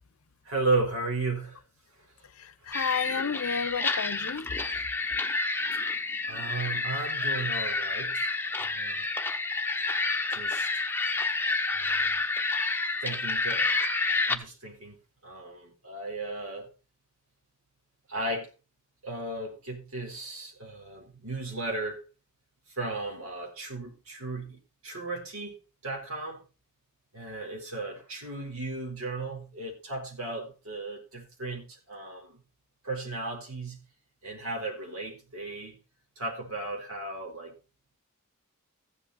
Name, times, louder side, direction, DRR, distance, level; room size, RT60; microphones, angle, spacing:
voice 1, 0.4-1.6 1.9-2.3 6.3-8.3 8.6-9.0 10.3-10.7 11.6-12.2 13.0-13.7 14.3-15.0 15.2-16.7 18.1-18.5 19.0-22.0 22.7-26.4 27.1-32.4 32.8-33.8 34.2-35.8 36.2-37.5, right 2 dB, 80° right, 4.2 m, -35 dB
voice 2, 2.4-4.5, left 6 dB, 80° left, 0.6 m, -32 dB
sound 1, 2.7-14.4, left 3 dB, 10° left, 0.8 m, -29 dB
15.0 x 8.0 x 4.1 m
head